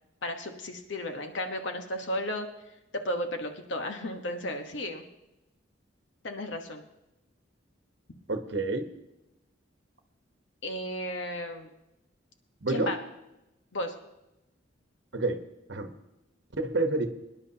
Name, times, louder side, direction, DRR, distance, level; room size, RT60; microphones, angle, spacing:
voice 1, 0.2-2.5 2.9-5.0 6.2-6.8 10.6-11.7 12.7-13.0 13.7-13.9, left 1 dB, 65° left, 5 dB, 1.2 m, -34 dB
voice 2, 8.3-8.9 12.6-13.0 15.1-15.4 15.7-15.9 16.6-17.1, right 2 dB, 60° right, 7 dB, 1.1 m, -28 dB
24.0 x 10.5 x 2.9 m, 0.92 s
head